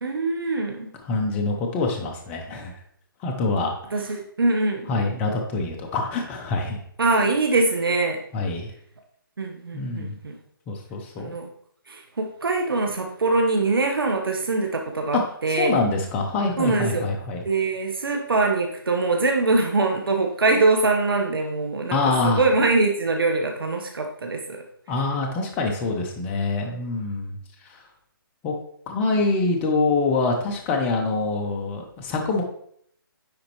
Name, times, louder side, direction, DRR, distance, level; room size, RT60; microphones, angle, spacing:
voice 1, 0.0-0.9 3.9-4.9 7.0-8.2 9.4-10.4 11.2-11.5 11.9-15.8 16.6-17.1 17.4-22.0 22.2-24.6, right 3 dB, 80° right, 3 dB, 1.1 m, -23 dB
voice 2, 1.0-2.7 3.2-4.1 4.9-6.8 8.3-8.7 9.7-10.2 10.7-11.3 15.5-17.4 21.9-22.4 24.9-27.8 28.4-28.5 28.9-32.4, left 3 dB, 10° left, 2 dB, 0.5 m, -25 dB
9.5 x 3.9 x 3.0 m, 0.66 s
hypercardioid pair, 160°, 12 cm